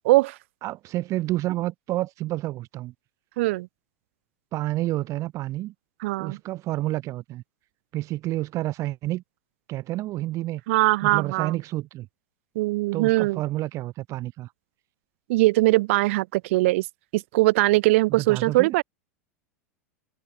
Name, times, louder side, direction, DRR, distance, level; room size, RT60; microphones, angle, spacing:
voice 1, 0.1-0.4 3.4-3.7 6.0-6.4 10.7-11.5 12.6-13.4 15.3-16.9 17.1-18.8, right 20 dB, 55° right, 0.4 m, -21 dB
voice 2, 0.6-2.9 4.5-5.7 6.2-7.4 7.9-9.2 9.7-10.6 11.0-12.1 12.9-14.5 18.1-18.7, right 16 dB, 40° right, 1.4 m, -29 dB
figure-of-eight pair, 85°, 8 cm